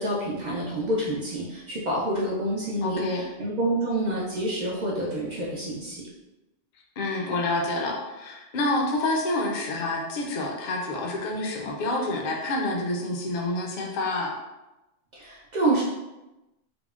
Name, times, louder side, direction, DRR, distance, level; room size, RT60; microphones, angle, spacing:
voice 1, 0.0-6.0 15.1-15.8, right 1 dB, 70° right, -5 dB, 0.4 m, -28 dB
voice 2, 2.8-3.2 7.0-14.3, left 2 dB, 60° left, 0 dB, 0.5 m, -28 dB
3.7 x 2.0 x 2.3 m, 1.0 s
omnidirectional pair, 1.4 m